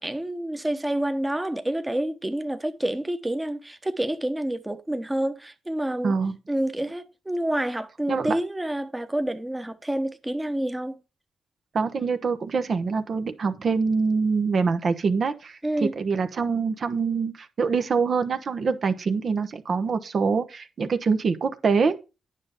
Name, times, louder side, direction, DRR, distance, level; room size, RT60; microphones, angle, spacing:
voice 1, 0.0-6.1 6.5-11.0 15.6-15.9, right 1 dB, 15° right, 1.0 m, -28 dB
voice 2, 6.0-6.4 8.1-8.4 11.7-21.9, right 5 dB, 55° right, 0.9 m, -25 dB
9.6 x 5.6 x 5.0 m
cardioid pair, 70°, 0 cm